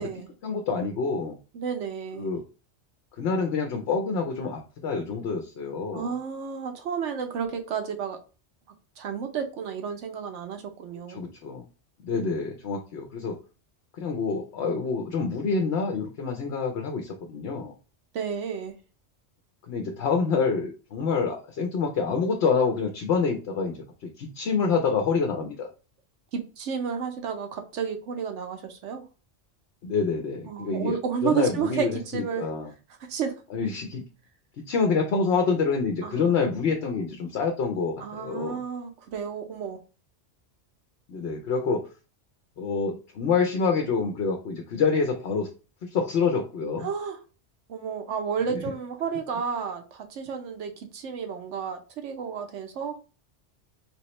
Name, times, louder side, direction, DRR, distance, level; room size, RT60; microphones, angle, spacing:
voice 1, 0.4-1.4 2.1-2.4 3.2-6.1 11.1-11.6 12.0-13.4 14.0-17.7 19.7-25.7 29.8-32.7 33.5-34.0 34.7-38.6 41.1-41.9 42.6-45.5 45.8-46.9 48.5-48.6, left 5 dB, 70° left, 0.9 m, -27 dB
voice 2, 1.5-2.3 5.9-8.2 9.0-11.2 18.1-18.7 26.3-29.0 30.5-32.4 33.0-33.3 36.0-36.4 38.0-39.8 46.8-47.2 47.7-53.0, right 7 dB, 80° right, 1.1 m, -31 dB
3.5 x 3.0 x 3.0 m
omnidirectional pair, 1.2 m